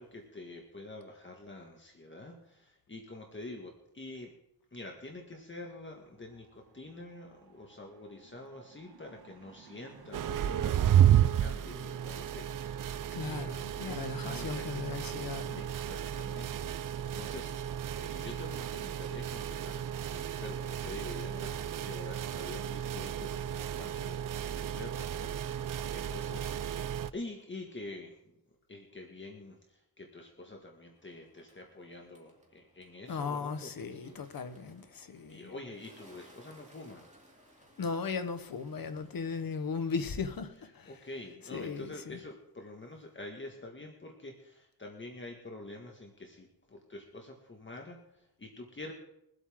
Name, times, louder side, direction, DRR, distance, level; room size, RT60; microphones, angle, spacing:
voice 1, 0.0-4.3 4.7-15.0 15.6-16.7 17.0-26.8 27.1-28.4 28.7-34.5 35.3-37.1 38.8-38.9 40.8-48.9, left 2 dB, 30° left, 1.8 m, -47 dB
sound 1, 5.9-13.4, right 6 dB, 90° right, 1.3 m, -57 dB
sound 2, 10.1-27.1, right 10 dB, 60° right, 0.5 m, -32 dB
voice 2, 13.1-15.6 33.1-35.5 37.8-40.9 41.5-42.2, left 5 dB, 70° left, 1.2 m, -37 dB
Bird, 31.0-40.4, equal, 20° right, 3.1 m, -61 dB
23.0 x 8.2 x 3.7 m
wide cardioid pair, 95°, 36 cm